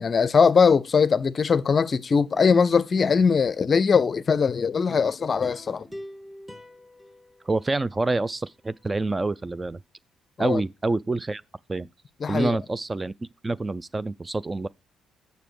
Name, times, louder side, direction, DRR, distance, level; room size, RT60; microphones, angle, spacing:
voice 1, 0.0-5.9 10.4-10.6 12.2-12.6, left 5 dB, 45° left, 0.5 m, -21 dB
sound 1, 4.9-8.2 8.6-8.7, equal, 10° right, 1.5 m, -45 dB
voice 2, 7.5-9.8 10.4-11.4 11.7-11.9 12.3-13.1 13.4-14.7, right 2 dB, 25° right, 0.4 m, -27 dB
6.9 x 6.6 x 4.7 m
hypercardioid pair, 50°, 0 cm